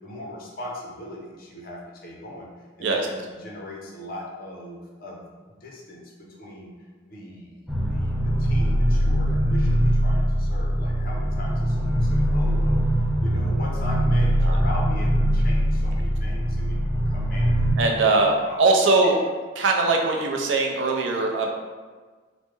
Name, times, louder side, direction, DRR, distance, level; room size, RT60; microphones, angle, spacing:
voice 1, 0.0-2.5 2.8-6.7 7.1-19.2, left 1 dB, 50° left, -2 dB, 0.6 m, -39 dB
sound 1, 7.7-17.7, equal, ahead, 0.3 m, -22 dB
voice 2, 17.8-18.3 18.6-19.2 19.6-21.5, right 3 dB, 80° right, 1 dB, 0.4 m, -21 dB
3.1 x 2.0 x 3.1 m, 1.4 s
head